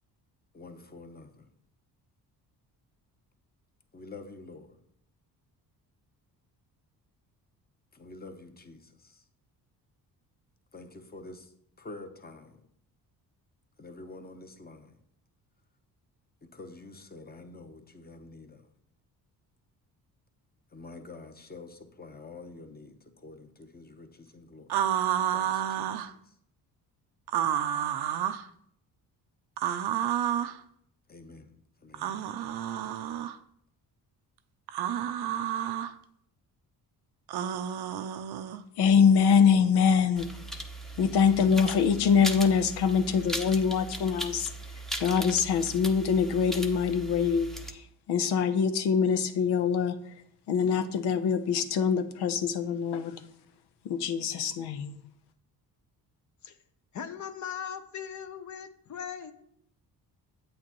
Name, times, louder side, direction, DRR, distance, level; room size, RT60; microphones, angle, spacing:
voice 1, 0.5-1.5 3.9-4.8 7.9-9.2 10.7-11.5 11.8-12.6 13.8-14.9 16.5-18.6 20.7-24.8 25.1-26.1 31.1-31.5 31.8-32.3, left 3 dB, 25° left, 1.0 m, -47 dB
sound 1, 24.7-26.1 27.3-28.4 29.6-30.6 31.9-33.4 34.7-35.9 37.3-38.6, right 10 dB, 80° right, 0.6 m, -30 dB
voice 2, 38.8-40.3 41.0-44.5 45.0-50.1 50.5-53.2 53.8-55.0, left 6 dB, 90° left, 0.8 m, -24 dB
sound 2, 40.2-47.7, right 1 dB, ahead, 0.7 m, -38 dB
voice 3, 56.9-59.3, left 8 dB, 50° left, 0.8 m, -39 dB
8.7 x 8.4 x 3.0 m
cardioid pair, 100°, 38 cm